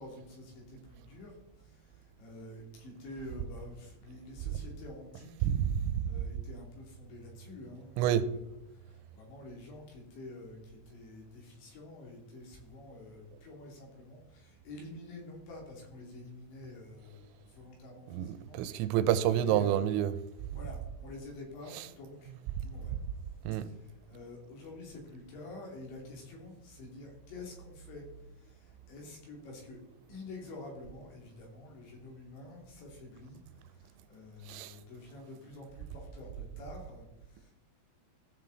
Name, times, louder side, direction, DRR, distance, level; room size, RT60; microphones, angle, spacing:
voice 1, 0.0-5.5 6.1-19.0 19.3-19.9 20.5-22.3 22.6-22.9 23.5-28.1 28.4-29.8 30.1-37.5, left 2 dB, 65° left, 4.9 m, -48 dB
voice 2, 5.4-6.0 8.0-8.3 18.1-20.1 21.8-21.9 23.5-23.7 34.5-34.7, right 10 dB, 90° right, 3.4 m, -28 dB
15.5 x 7.6 x 4.0 m
omnidirectional pair, 5.8 m